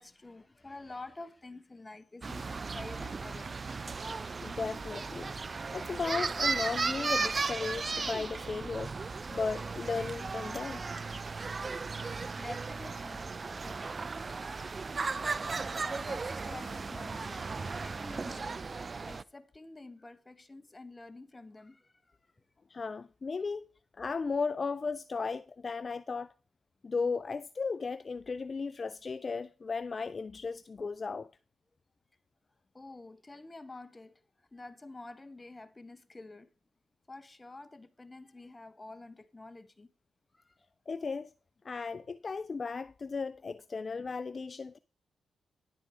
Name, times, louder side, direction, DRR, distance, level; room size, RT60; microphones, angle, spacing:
voice 1, 0.0-3.5 9.3-9.4 11.1-14.1 15.8-17.4 17.8-18.7 19.1-22.4 32.7-36.5 37.1-39.9 40.3-40.7, left 2 dB, 30° left, 1.1 m, -49 dB
sound 1, 2.2-19.2, right 4 dB, 45° right, 0.4 m, -36 dB
voice 2, 4.1-5.3 5.7-10.8 22.7-23.7 24.0-26.3 26.8-31.3 40.9-41.3 41.6-44.8, left 4 dB, 50° left, 0.3 m, -36 dB
10.5 x 8.3 x 3.6 m
supercardioid pair, 45°, 0 cm